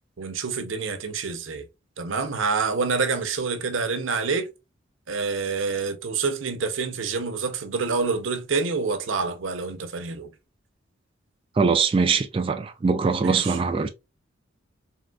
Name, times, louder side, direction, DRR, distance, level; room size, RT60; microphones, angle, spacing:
voice 1, 0.2-1.7 2.0-4.5 5.1-10.3 13.1-13.6, right 4 dB, 90° right, 0.6 m, -27 dB
voice 2, 11.6-13.9, right 5 dB, 30° right, 0.3 m, -22 dB
3.6 x 2.4 x 2.2 m
head